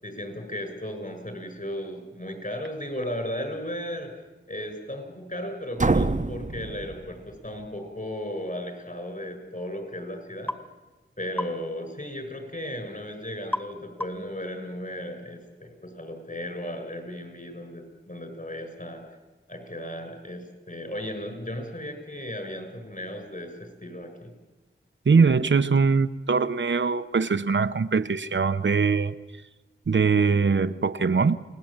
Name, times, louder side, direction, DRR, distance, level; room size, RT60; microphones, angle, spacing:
voice 1, 0.0-4.1 4.5-10.5 11.2-19.0 19.5-24.3, left 1 dB, 40° left, 6 dB, 7.1 m, -35 dB
sound 1, 5.8-7.6, right 3 dB, 35° right, 1.0 m, -26 dB
sound 2, 10.5-10.7 11.4-11.6 13.5-13.7 14.0-14.3, left 1 dB, 10° left, 1.9 m, -31 dB
voice 2, 25.1-29.1 29.9-31.4, right 5 dB, 65° right, 10 dB, 0.9 m, -22 dB
29.5 x 20.0 x 9.0 m, 1.2 s
wide cardioid pair, 55°, 21 cm